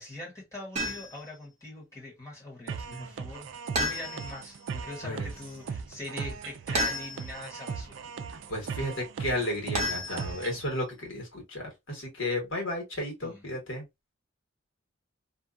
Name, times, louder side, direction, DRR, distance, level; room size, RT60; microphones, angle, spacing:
voice 1, 0.0-8.1 13.2-13.4, left 2 dB, 15° left, 1.3 m, -43 dB
sound 1, 0.8-1.3 3.8-4.5 6.7-7.5 9.7-10.6, equal, 35° right, 0.9 m, -32 dB
sound 2, 2.7-10.7, right 6 dB, 70° right, 0.4 m, -38 dB
voice 2, 8.5-13.9, left 1 dB, 70° left, 1.5 m, -33 dB
2.7 x 2.3 x 2.4 m
head